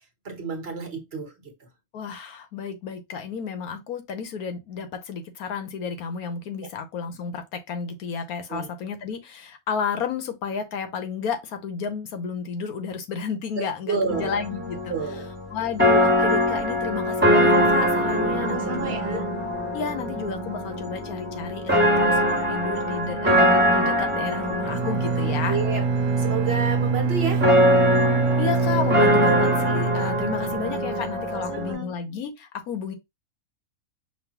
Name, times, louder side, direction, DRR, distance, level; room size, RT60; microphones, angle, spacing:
voice 1, 0.2-1.5 8.5-8.7 13.6-14.3 14.9-15.3 18.4-19.3 25.5-25.8 26.2-27.5 31.3-31.9, right 5 dB, 45° right, 1.2 m, -30 dB
voice 2, 1.9-14.9 15.5-19.2 19.7-25.6 28.4-32.9, left 6 dB, 85° left, 1.3 m, -32 dB
sound 1, 14.1-31.7, equal, 10° right, 1.2 m, -23 dB
Bowed string instrument, 24.6-30.7, right 5 dB, 80° right, 1.1 m, -25 dB
5.4 x 2.6 x 2.8 m
omnidirectional pair, 1.5 m